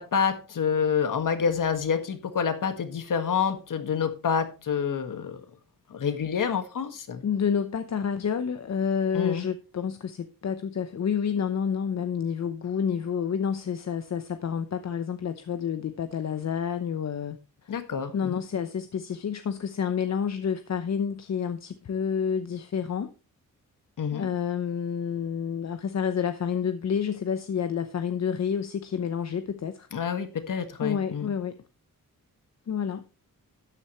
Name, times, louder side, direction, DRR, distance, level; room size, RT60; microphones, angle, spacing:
voice 1, 0.0-5.4 5.9-7.2 9.1-9.5 17.7-18.4 24.0-24.3 29.9-31.3, left 7 dB, 65° left, 1.8 m, -28 dB
voice 2, 7.2-17.4 18.1-23.1 24.1-29.9 30.8-31.6 32.7-33.1, left 7 dB, 50° left, 0.9 m, -29 dB
13.0 x 9.7 x 3.1 m
wide cardioid pair, 120°, 34 cm